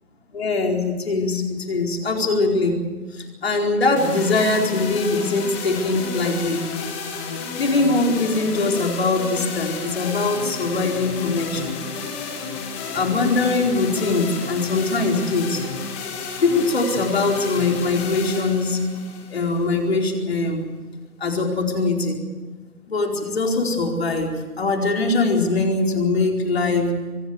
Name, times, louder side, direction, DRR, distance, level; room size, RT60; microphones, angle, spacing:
voice 1, 0.3-2.8 3.1-6.6 7.6-11.8 12.9-15.6 16.4-18.8 19.3-20.6 21.2-22.2 22.9-27.0, left 3 dB, 40° left, 2 dB, 4.5 m, -22 dB
sound 1, 4.0-20.0, left 5 dB, 10° left, 1.4 m, -32 dB
25.5 x 21.0 x 6.6 m, 1.4 s
figure-of-eight pair, 155°, 46 cm